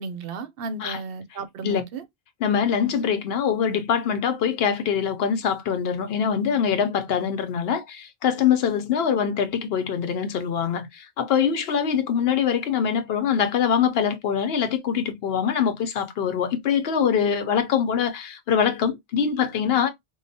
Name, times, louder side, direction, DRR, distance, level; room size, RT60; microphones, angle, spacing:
voice 1, 0.0-2.0, right 3 dB, 70° right, 0.8 m, -34 dB
voice 2, 2.4-19.9, left 7 dB, 75° left, 0.9 m, -23 dB
4.6 x 2.0 x 2.6 m
omnidirectional pair, 1.0 m